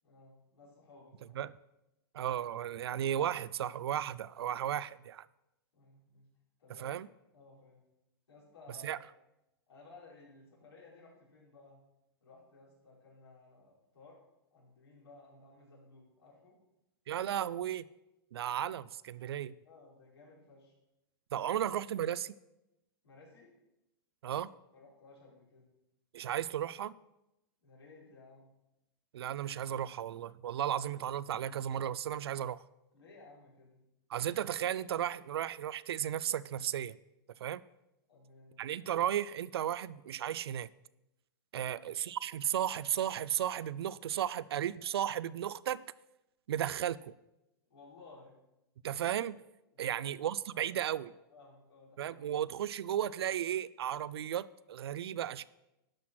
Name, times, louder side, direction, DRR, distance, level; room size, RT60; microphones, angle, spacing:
voice 1, 0.0-1.4 5.7-6.2 6.6-6.9 7.3-7.9 8.3-9.0 9.7-11.8 12.2-14.2 14.5-16.6 19.6-20.7 21.4-21.5 23.0-23.5 24.7-25.7 27.6-28.6 32.9-33.8 38.1-38.8 41.6-41.8 47.7-48.4 49.7-50.1 50.5-51.0 51.3-52.3, left 3 dB, 85° left, 4.6 m, -57 dB
voice 2, 2.1-5.3 6.8-7.1 8.8-9.0 17.1-17.8 18.3-19.5 21.3-22.3 24.2-24.5 26.1-27.0 29.1-32.6 34.1-37.0 37.4-37.6 38.6-40.7 41.5-45.8 46.5-47.1 48.8-49.4 49.8-51.1 52.0-55.5, right 10 dB, 80° right, 0.5 m, -34 dB
11.5 x 6.0 x 6.1 m
hypercardioid pair, 120°, 13 cm